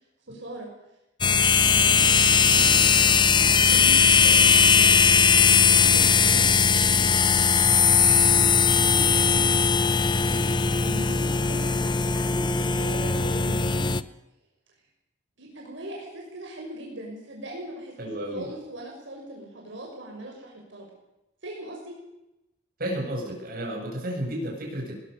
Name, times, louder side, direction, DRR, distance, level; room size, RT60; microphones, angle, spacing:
voice 1, 0.3-0.7 1.3-2.0 2.4-7.3 8.0-8.4 8.7-9.8 10.2-13.9 15.4-20.9 21.4-21.9, right 1 dB, 75° right, -1 dB, 6.4 m, -40 dB
sound 1, 1.2-14.0, left 6 dB, 25° left, 0.7 m, -19 dB
voice 2, 18.0-18.5 22.8-24.9, right 1 dB, 55° right, 0 dB, 7.8 m, -32 dB
21.5 x 20.0 x 6.8 m, 0.92 s
head